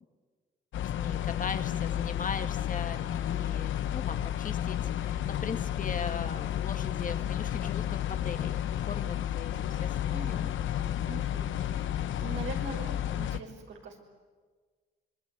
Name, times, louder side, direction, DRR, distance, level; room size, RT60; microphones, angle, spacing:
sound 1, 0.7-13.4, left 11 dB, 75° left, 1.2 m, -32 dB
voice 1, 1.0-10.4, left 5 dB, 40° left, 8 dB, 1.9 m, -39 dB
voice 2, 10.1-10.5 11.0-11.6 12.2-14.0, right 4 dB, 70° right, 2 dB, 5.6 m, -42 dB
25.5 x 22.0 x 9.5 m, 1.5 s
cardioid pair, 90°, 20 cm